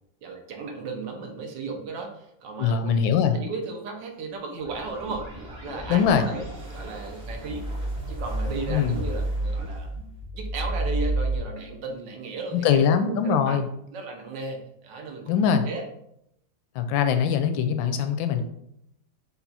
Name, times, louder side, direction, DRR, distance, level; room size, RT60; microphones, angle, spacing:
voice 1, 0.2-5.3 5.6-6.4 6.7-7.6 8.1-9.9 10.3-12.9 13.2-13.6 13.9-15.4 15.7-15.8, right 3 dB, 70° right, 2 dB, 1.4 m, -35 dB
voice 2, 2.6-3.4 5.9-6.3 8.7-8.9 12.5-13.7 15.3-15.6 16.7-18.4, left 7 dB, 85° left, 8 dB, 1.3 m, -22 dB
sound 1, 4.5-11.4, right 1 dB, 30° right, 1.3 m, -31 dB
5.6 x 2.3 x 4.0 m, 0.78 s
omnidirectional pair, 2.1 m